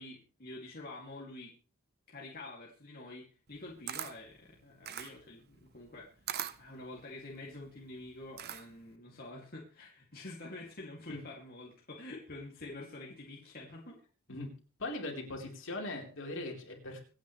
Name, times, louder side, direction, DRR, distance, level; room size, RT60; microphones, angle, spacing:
voice 1, 0.0-1.5 2.1-6.2 6.6-14.0, left 2 dB, 45° left, -3 dB, 2.6 m, -47 dB
Camera, 3.5-8.9, right 10 dB, 50° right, 0.9 m, -43 dB
voice 2, 14.8-17.0, left 2 dB, 60° left, 0 dB, 4.1 m, -40 dB
25.5 x 9.3 x 3.3 m, 0.38 s
head